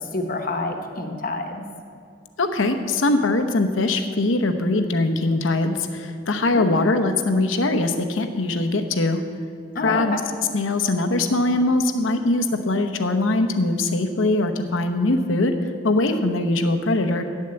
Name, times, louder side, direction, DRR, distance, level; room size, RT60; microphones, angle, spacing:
voice 1, 0.0-1.6 6.5-6.9 9.7-10.2, left 2 dB, 45° left, 5 dB, 1.0 m, -27 dB
voice 2, 2.4-9.2 9.8-10.2 10.5-15.5 15.8-17.2, left 2 dB, 85° left, 6 dB, 0.9 m, -22 dB
10.0 x 7.4 x 7.7 m, 2.3 s
head